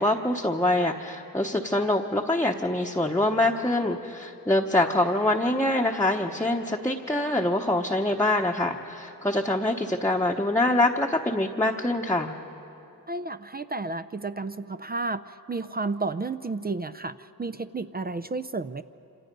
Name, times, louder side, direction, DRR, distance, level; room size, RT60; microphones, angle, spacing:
voice 1, 0.0-12.3, left 1 dB, 5° left, 0 dB, 0.9 m, -25 dB
voice 2, 13.1-18.8, right 3 dB, 25° right, 12 dB, 0.4 m, -32 dB
27.5 x 26.5 x 5.3 m, 2.9 s
wide cardioid pair, 100°, 37 cm